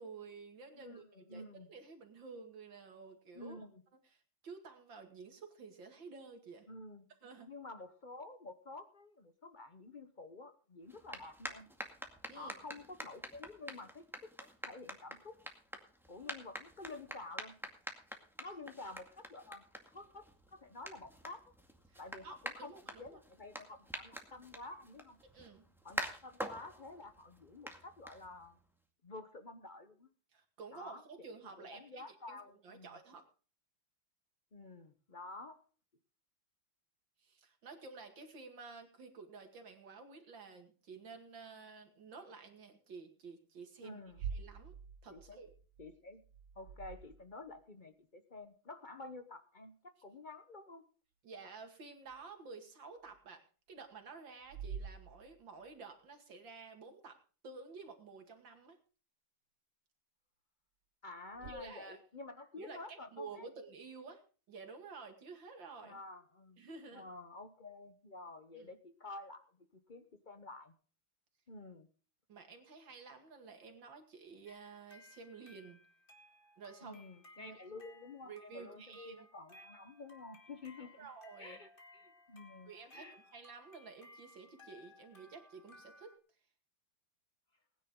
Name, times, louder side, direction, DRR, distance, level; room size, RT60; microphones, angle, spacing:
voice 1, 0.0-3.7 4.0-6.7 7.2-7.5 12.3-12.6 21.9-23.2 25.3-25.7 30.3-33.2 37.2-44.7 45.0-45.5 51.2-53.4 53.7-57.2 57.4-58.8 61.4-62.0 62.6-64.2 64.5-66.0 66.6-67.1 68.5-68.7 72.3-75.8 76.6-77.0 77.4-77.6 78.2-79.3 80.8-81.6 82.7-86.1, right 4 dB, 60° right, 5 dB, 2.9 m, -52 dB
voice 2, 0.7-1.7 3.3-3.8 6.7-7.1 7.5-11.7 12.3-15.4 16.1-17.6 18.4-19.7 19.9-20.2 20.5-21.5 22.0-22.7 23.0-25.2 25.8-28.6 29.0-30.1 30.7-31.0 31.6-33.0 34.5-35.6 43.8-44.2 45.1-45.4 45.8-46.2 46.6-50.8 61.0-63.5 65.8-66.6 66.9-70.7 71.5-71.9 76.8-81.1 81.4-83.2, left 2 dB, 50° left, 10 dB, 0.5 m, -50 dB
sound 1, 10.9-28.6, equal, ahead, 1.8 m, -47 dB
sound 2, 44.1-47.6 52.1-52.2 53.1-53.2 54.4-55.7 61.3-61.5, right 7 dB, 80° right, 2.0 m, -47 dB
sound 3, 74.5-86.2, left 2 dB, 25° left, 2.2 m, -61 dB
20.0 x 10.0 x 3.7 m, 0.38 s
omnidirectional pair, 2.3 m